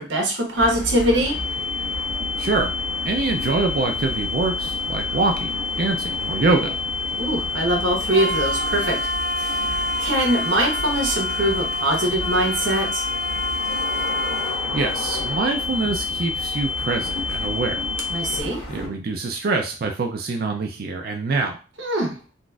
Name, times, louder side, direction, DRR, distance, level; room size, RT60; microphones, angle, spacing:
voice 1, 0.0-1.3 7.2-9.1 9.4-13.1 18.1-18.6 21.8-22.2, right 1 dB, 80° right, 1 dB, 1.0 m, -23 dB
In an old train, 0.6-18.9, equal, 60° left, 1.1 m, -31 dB
sound 1, 1.2-18.4, left 5 dB, 10° left, 0.6 m, -29 dB
voice 2, 2.4-2.7 3.1-5.5 5.8-6.8 14.7-17.8 18.7-21.6, right 3 dB, 50° right, 3 dB, 0.4 m, -24 dB
3.9 x 2.5 x 2.3 m, 0.34 s
head